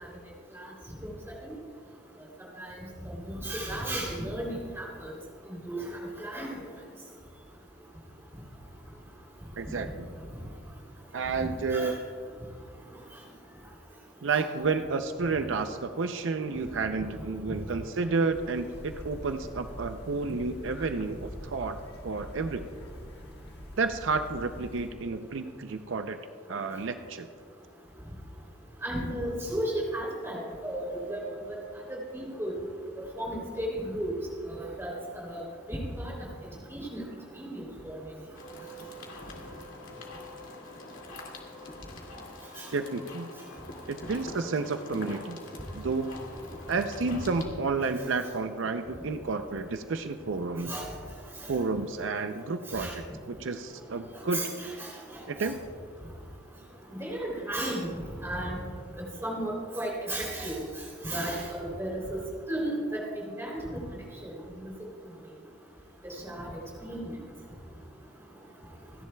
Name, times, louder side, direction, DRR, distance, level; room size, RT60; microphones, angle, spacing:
voice 1, 3.3-5.1 5.5-5.8 6.2-6.5 11.7-11.9 14.3-14.4 28.8-31.2 31.9-32.6 33.2-34.1 34.5-35.4 35.7-36.1 36.7-37.0 37.4-37.9 42.6-42.7 50.7-50.8 52.7-52.9 54.3-54.9 55.4-55.5 56.9-57.9 58.2-58.6 59.2-60.6 61.0-62.2 62.5-63.8 64.2-64.3 66.0-66.5 66.8-67.1, right 1 dB, 15° right, -3 dB, 3.1 m, -34 dB
voice 2, 9.6-10.1 11.1-12.0 14.2-21.8 22.0-22.7 23.8-26.2 26.5-27.3 42.7-43.3 43.9-45.4 45.7-46.1 46.7-50.7 51.5-54.5 55.3-55.6, right 4 dB, 75° right, 8 dB, 0.5 m, -31 dB
sound 1, 18.3-24.9, equal, 55° left, 1.5 m, -44 dB
sound 2, 38.3-47.5, left 2 dB, 85° left, 2.3 m, -45 dB
28.0 x 10.5 x 2.3 m, 2.3 s
head